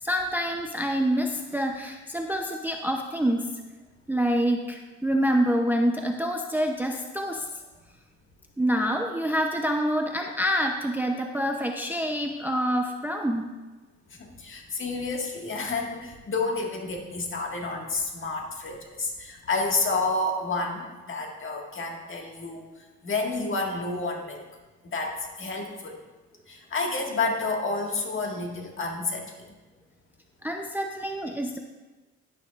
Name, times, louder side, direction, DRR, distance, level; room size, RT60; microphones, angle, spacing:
voice 1, 0.0-3.5 4.1-7.5 8.6-13.5 30.4-31.6, equal, 5° right, 3 dB, 0.5 m, -26 dB
voice 2, 14.4-22.6 23.0-24.4 24.8-26.0 26.5-29.2, left 3 dB, 40° left, 0 dB, 1.7 m, -30 dB
11.0 x 9.5 x 2.4 m, 1.2 s
cardioid pair, 90°, 30 cm